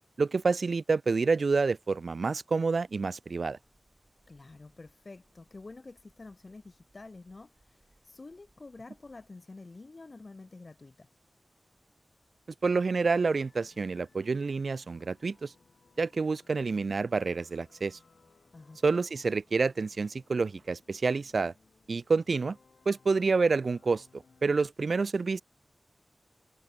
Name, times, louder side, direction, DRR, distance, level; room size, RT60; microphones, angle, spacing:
voice 1, 0.2-3.6 12.6-15.5 16.0-18.0 18.8-21.5 21.9-22.6 22.9-25.4, right 4 dB, 70° right, 0.3 m, -28 dB
sound 1, 3.6-9.3, right 2 dB, 25° right, 7.9 m, -70 dB
voice 2, 4.3-7.5 8.0-11.1 18.5-18.8, left 3 dB, 45° left, 1.3 m, -48 dB
sound 2, 13.2-24.7, left 4 dB, 85° left, 5.0 m, -64 dB
wide cardioid pair, 95°, 0 cm